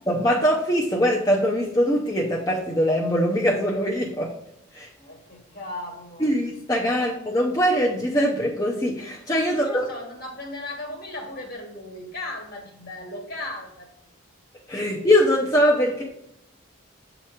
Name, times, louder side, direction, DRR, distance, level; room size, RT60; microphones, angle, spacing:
voice 1, 0.1-4.3 4.7-4.9 6.2-9.9 14.7-16.0, equal, 15° left, -3 dB, 0.6 m, -22 dB
voice 2, 5.0-6.3 6.9-7.1 9.5-13.9 14.8-14.9, left 1 dB, 45° left, 2 dB, 1.5 m, -37 dB
7.4 x 3.0 x 4.9 m, 0.82 s
head